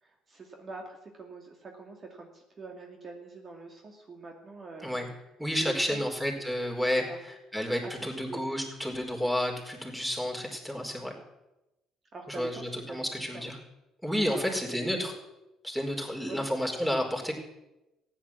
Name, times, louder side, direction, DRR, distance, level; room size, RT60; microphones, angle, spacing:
voice 1, 0.0-5.0 5.6-6.1 6.9-7.2 7.8-8.4 12.1-12.6 12.9-13.5 14.3-15.1 16.3-16.5, right 3 dB, 40° right, 2 dB, 2.4 m, -44 dB
voice 2, 5.4-11.1 12.3-13.6 14.0-15.1 15.6-17.3, equal, 5° right, 2 dB, 4.7 m, -31 dB
15.5 x 9.9 x 7.4 m, 0.95 s
hypercardioid pair, 55°, 0 cm